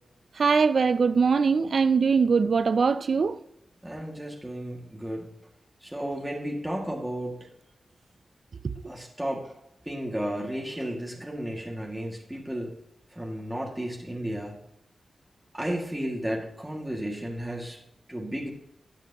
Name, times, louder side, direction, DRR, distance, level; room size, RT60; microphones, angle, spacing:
voice 1, 0.4-3.4, right 5 dB, 65° right, 0.4 m, -22 dB
voice 2, 3.8-5.3 5.8-7.4 8.8-9.5 9.8-12.7 13.1-14.6 15.5-17.8 18.1-18.5, equal, 10° right, 2.2 m, -33 dB
13.5 x 7.3 x 3.0 m
cardioid pair, 45°, 0 cm